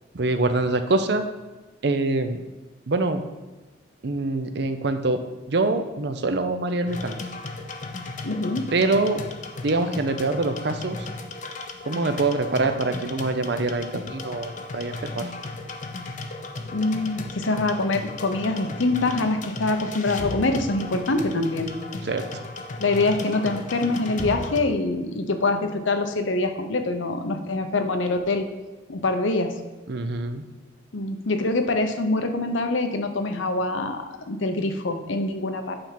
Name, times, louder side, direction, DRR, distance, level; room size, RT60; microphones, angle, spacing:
voice 1, 0.1-1.2 1.8-2.4 2.9-3.2 4.0-5.2 5.5-7.2 8.7-9.2 9.6-11.1 11.9-15.3 22.0-22.2 29.9-30.4, right 2 dB, 60° right, 8 dB, 0.6 m, -24 dB
sound 1, 6.9-24.6, left 2 dB, 40° left, 0.6 m, -35 dB
voice 2, 8.2-8.6 14.9-15.0 16.7-21.7 22.8-28.5 28.9-29.5 30.9-35.8, left 2 dB, 80° left, 6 dB, 0.8 m, -25 dB
8.8 x 3.5 x 5.8 m, 1.2 s
head